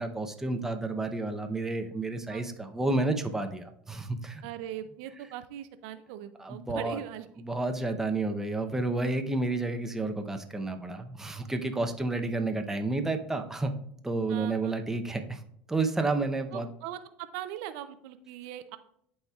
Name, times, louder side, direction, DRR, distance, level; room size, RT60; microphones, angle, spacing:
voice 1, 0.0-4.5 6.4-7.0 7.4-13.7 14.0-15.4 15.7-16.7, right 2 dB, 10° right, 5 dB, 0.7 m, -30 dB
voice 2, 4.4-7.3 14.3-14.7 16.5-18.8, right 11 dB, 70° right, 11 dB, 0.5 m, -40 dB
11.5 x 4.3 x 2.3 m, 0.70 s
supercardioid pair, 115°, 5 cm